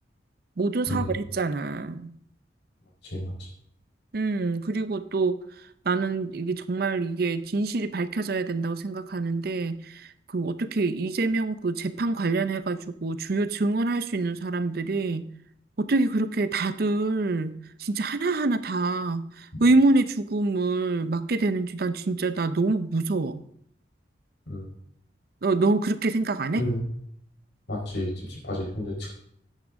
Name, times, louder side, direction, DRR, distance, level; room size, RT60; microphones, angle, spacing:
voice 1, 0.6-2.1 4.1-5.4 5.8-15.2 15.8-17.5 17.8-23.4 25.4-26.7, right 3 dB, 55° right, 12 dB, 0.6 m, -26 dB
voice 2, 3.0-3.5 24.5-24.6 26.6-26.8 27.7-29.1, left 1 dB, 75° left, -2 dB, 4.4 m, -31 dB
11.5 x 9.5 x 3.7 m, 0.69 s
head